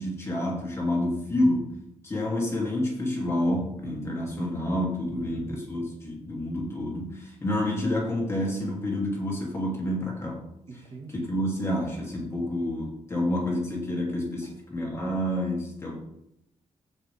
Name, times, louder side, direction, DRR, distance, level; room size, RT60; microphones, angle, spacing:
voice 1, 0.0-1.8 2.0-10.4 11.1-16.0, left 1 dB, 20° left, -3 dB, 2.8 m, -28 dB
voice 2, 5.2-5.6 10.7-11.3 14.4-14.5, right 3 dB, 55° right, 2 dB, 1.9 m, -44 dB
15.5 x 5.4 x 3.5 m, 0.82 s
wide cardioid pair, 140°, 12 cm